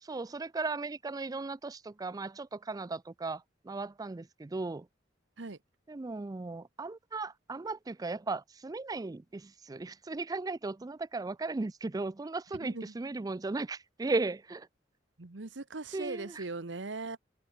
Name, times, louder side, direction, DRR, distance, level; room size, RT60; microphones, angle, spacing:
voice 1, 0.0-4.9 5.9-14.7 15.9-16.4, right 3 dB, 20° right, 0.4 m, -36 dB
voice 2, 12.6-12.9 15.2-17.2, right 3 dB, 70° right, 1.2 m, -39 dB
head